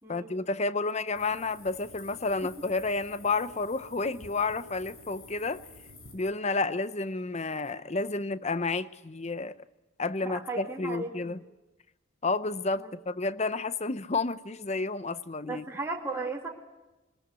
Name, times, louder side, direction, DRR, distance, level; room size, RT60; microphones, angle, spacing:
voice 1, 0.1-5.6 6.1-9.5 10.0-11.4 12.2-15.6, left 3 dB, 30° left, 14 dB, 0.7 m, -31 dB
sound 1, 1.1-6.1, left 2 dB, 75° left, 5.6 m, -51 dB
voice 2, 10.2-11.3 12.8-12.9 15.5-16.5, right 3 dB, 10° right, -1 dB, 2.4 m, -36 dB
21.0 x 20.5 x 8.1 m, 1.0 s
head